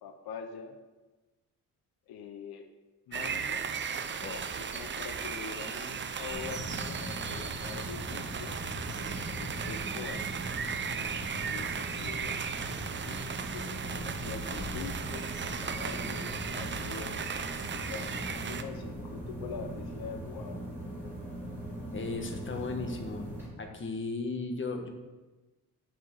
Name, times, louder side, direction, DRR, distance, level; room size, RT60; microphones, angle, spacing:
voice 1, 0.0-0.8 2.1-2.7 3.1-3.7 4.7-10.3 11.3-12.4 13.1-13.3 13.5-17.1 17.7-20.6, left 6 dB, 75° left, 6 dB, 0.9 m, -44 dB
sound 1, 3.1-18.6, right 6 dB, 30° right, 0.6 m, -36 dB
voice 2, 4.2-4.6 21.9-23.3 23.6-24.9, left 3 dB, 30° left, 3 dB, 1.4 m, -36 dB
sound 2, 6.3-23.5, equal, 5° right, 3.8 m, -40 dB
8.6 x 5.8 x 7.1 m, 1.2 s
cardioid pair, 135°, 37 cm